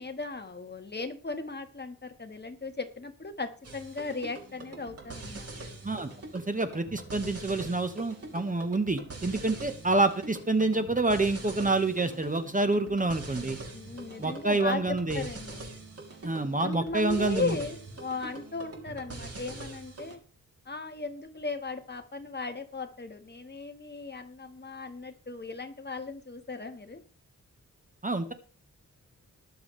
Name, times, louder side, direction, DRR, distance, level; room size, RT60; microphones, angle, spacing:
voice 1, 0.0-5.5 9.4-9.5 13.7-15.7 16.6-20.2 20.6-27.0, left 3 dB, 30° left, 6 dB, 1.5 m, -37 dB
sound 1, 3.6-20.2, right 2 dB, 45° right, 3.0 m, -43 dB
voice 2, 5.8-13.6 14.2-15.3 16.2-17.6 28.0-28.3, right 2 dB, 25° right, 9 dB, 1.1 m, -27 dB
21.0 x 7.2 x 3.3 m, 0.40 s
wide cardioid pair, 120°, 33 cm